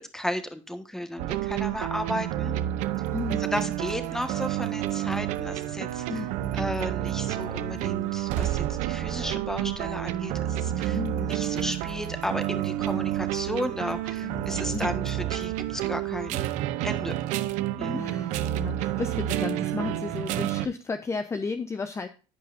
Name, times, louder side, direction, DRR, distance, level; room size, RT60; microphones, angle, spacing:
voice 1, 0.1-2.5 3.5-6.2 6.6-16.5 16.8-17.1 17.8-18.0, left 1 dB, 5° left, 8 dB, 1.4 m, -34 dB
sound 1, 1.2-20.7, right 13 dB, 85° right, 0.7 m, -29 dB
voice 2, 3.1-3.7 6.1-6.6 10.9-11.4 14.2-15.1 17.9-22.1, left 4 dB, 25° left, 8 dB, 0.7 m, -34 dB
15.0 x 5.4 x 2.6 m, 0.35 s
cardioid pair, 105°, 12 cm